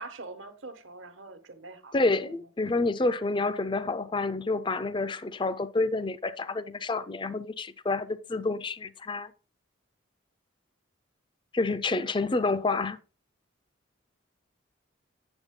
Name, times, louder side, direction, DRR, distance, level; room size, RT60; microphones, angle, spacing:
voice 1, 0.0-1.9 2.2-2.3 12.0-12.7, right 3 dB, 70° right, 1.2 m, -44 dB
voice 2, 1.9-9.3 11.5-13.0, left 3 dB, 25° left, 0.5 m, -28 dB
8.9 x 7.5 x 3.7 m
head